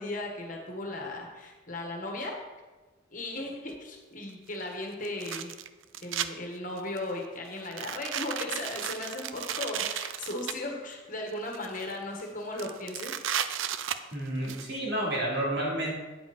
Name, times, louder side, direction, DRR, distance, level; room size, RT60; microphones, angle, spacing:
voice 1, 0.0-2.3 3.1-5.5 6.0-13.2, left 2 dB, 40° left, 1 dB, 1.5 m, -36 dB
sound 1, 3.7-3.8 5.0-6.3 6.8-7.1 7.6-10.5 11.3-11.9 12.2-12.3 12.6-14.7, right 9 dB, 70° right, 0.5 m, -34 dB
voice 2, 14.1-15.9, right 1 dB, 55° right, -5 dB, 3.5 m, -30 dB
9.3 x 9.2 x 4.3 m, 1.2 s
head